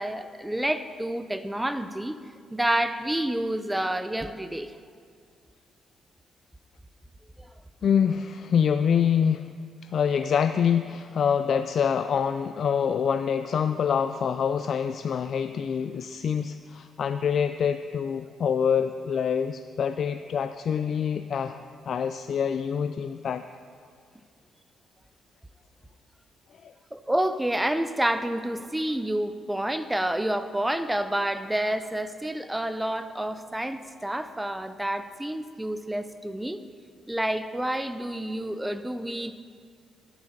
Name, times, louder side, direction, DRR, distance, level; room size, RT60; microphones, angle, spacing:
voice 1, 0.0-2.2 2.5-4.7 7.4-7.5 26.9-36.6 37.1-39.3, right 1 dB, 10° right, 11 dB, 0.5 m, -29 dB
voice 2, 7.8-9.5 9.8-21.6 21.9-23.4 26.6-26.7, left 7 dB, 55° left, 10 dB, 0.3 m, -26 dB
11.0 x 9.5 x 5.3 m, 2.1 s
cardioid pair, 90°, 0 cm